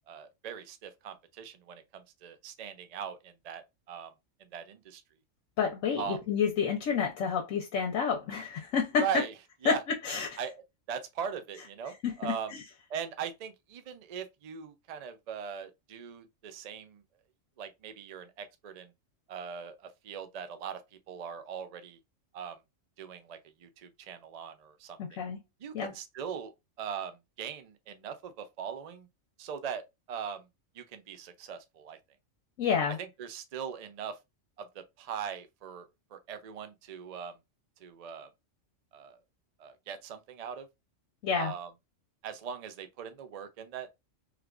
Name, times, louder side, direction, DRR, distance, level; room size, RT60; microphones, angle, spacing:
voice 1, 0.0-4.1 4.4-5.0 6.0-6.2 9.0-9.3 9.6-9.8 10.4-12.6 12.9-17.0 17.6-18.9 19.3-20.8 21.1-22.0 22.3-22.6 23.0-25.2 25.6-26.5 26.8-29.1 29.4-30.5 30.7-32.0 33.0-34.2 34.6-37.4 37.8-38.3 38.9-39.2 39.6-40.7 41.3-41.7 42.2-44.0, right 7 dB, 60° right, 0.4 m, -40 dB
voice 2, 5.6-9.1 9.6-10.4 12.0-12.6 25.0-25.4 25.7-25.9 32.6-33.0 41.2-41.5, left 6 dB, 80° left, 1.1 m, -29 dB
3.2 x 3.2 x 2.4 m
omnidirectional pair, 1.3 m